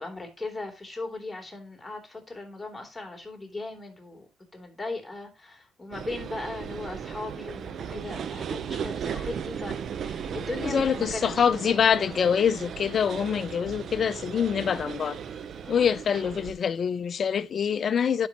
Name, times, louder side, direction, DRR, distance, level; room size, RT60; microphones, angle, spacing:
voice 1, 0.0-4.3 4.5-12.3 15.6-15.9, left 3 dB, 15° left, 3.6 m, -38 dB
sound 1, 5.9-16.5, right 7 dB, 65° right, 0.8 m, -36 dB
voice 2, 10.3-15.2 15.7-18.3, left 7 dB, 55° left, 0.6 m, -25 dB
12.0 x 5.4 x 3.0 m
hypercardioid pair, 50°, 0 cm